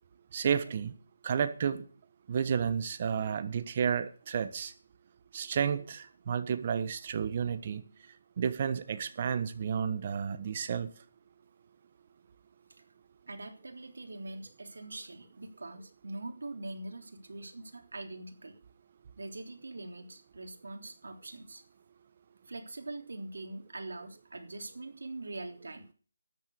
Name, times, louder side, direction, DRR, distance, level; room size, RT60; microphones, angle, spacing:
voice 1, 0.3-0.9 1.2-1.8 2.3-4.7 5.3-7.8 8.4-10.9, right 7 dB, 35° right, 11 dB, 1.3 m, -31 dB
voice 2, 13.3-18.5 19.2-21.6 22.5-25.9, right 2 dB, 80° right, 4 dB, 3.4 m, -43 dB
13.0 x 9.4 x 6.7 m, 0.41 s
hypercardioid pair, 165°, 0 cm